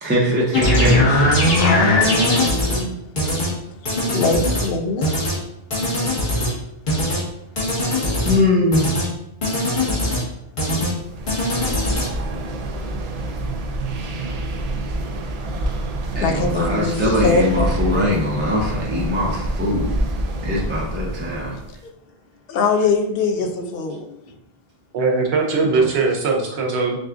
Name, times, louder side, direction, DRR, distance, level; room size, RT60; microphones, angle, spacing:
voice 1, 0.0-1.3 8.2-8.9 16.1-19.9 20.4-21.6 23.4-23.7 25.7-25.8 26.1-26.8, left 1 dB, 10° right, -5 dB, 0.8 m, -22 dB
sound 1, 0.5-2.8 3.2-3.5 3.8-4.7 5.0-5.4 5.7-6.5 6.9-7.2 7.6-8.4 8.7-9.1 9.4-10.2 10.6-10.9 11.3-12.1, left 1 dB, 50° left, 1.4 m, -20 dB
voice 2, 1.5-3.3 4.1-5.1 16.1-17.7 21.8-21.9 22.5-24.2, left 4 dB, 65° left, 5 dB, 0.7 m, -23 dB
sound 2, 11.0-21.8, right 1 dB, 50° right, 0.5 m, -27 dB
voice 3, 24.9-27.0, right 4 dB, 85° right, 2 dB, 1.0 m, -20 dB
6.2 x 2.4 x 2.5 m, 0.80 s
omnidirectional pair, 1.1 m